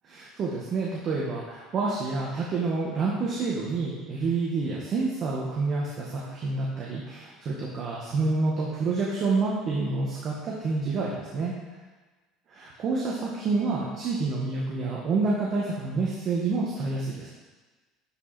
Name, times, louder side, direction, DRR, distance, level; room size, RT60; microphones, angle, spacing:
voice 1, 0.1-11.5 12.5-17.3, right 3 dB, 45° right, -4 dB, 1.7 m, -28 dB
11.5 x 5.2 x 4.4 m, 1.3 s
supercardioid pair, 110°, 0 cm